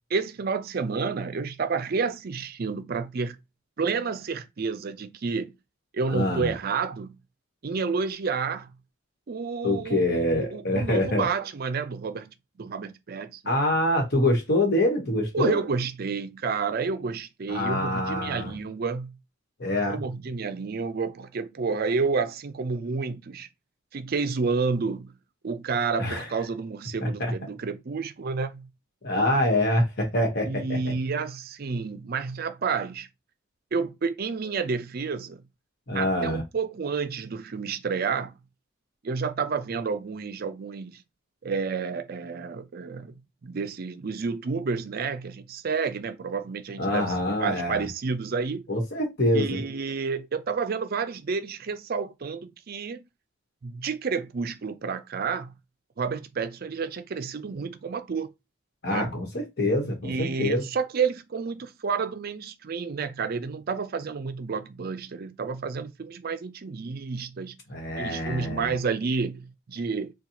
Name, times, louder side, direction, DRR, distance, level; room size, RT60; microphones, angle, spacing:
voice 1, 0.1-3.4 3.8-5.5 5.9-7.1 7.6-8.7 9.3-13.4 15.3-19.2 19.9-23.5 23.9-25.1 25.4-28.7 30.5-33.1 33.7-35.4 35.9-38.3 39.0-41.0 41.4-43.1 43.4-47.1 47.4-48.6 49.3-53.0 53.6-55.5 56.0-58.3 58.9-59.2 60.0-67.6 68.0-70.1, right 5 dB, 45° right, 0.4 m, -30 dB
voice 2, 6.1-6.5 9.6-11.3 13.4-15.6 17.5-18.5 19.6-20.0 26.0-26.3 27.0-27.3 29.0-30.9 35.9-36.4 46.8-47.8 48.7-49.6 58.8-60.6 67.7-68.8, left 1 dB, 55° left, 1.2 m, -25 dB
4.1 x 2.3 x 2.8 m
head